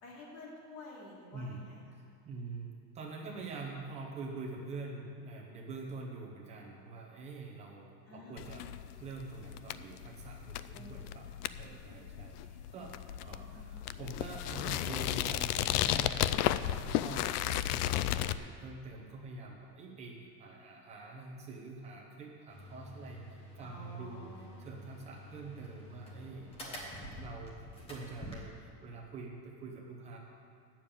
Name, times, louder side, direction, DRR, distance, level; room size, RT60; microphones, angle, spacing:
voice 1, 0.0-2.0 8.1-8.5 10.5-11.4 13.2-13.8 23.6-24.5, left 2 dB, 40° left, -4 dB, 2.7 m, -51 dB
voice 2, 2.2-11.3 11.6-23.2 23.6-24.3 24.6-26.8 27.2-30.2, right 3 dB, 15° right, -1 dB, 0.9 m, -45 dB
sound 1, 8.4-18.4, left 13 dB, 70° left, 0.5 m, -34 dB
sound 2, 22.5-28.4, equal, 10° left, 1.0 m, -48 dB
8.4 x 7.2 x 8.8 m, 2.4 s
supercardioid pair, 180°, 49 cm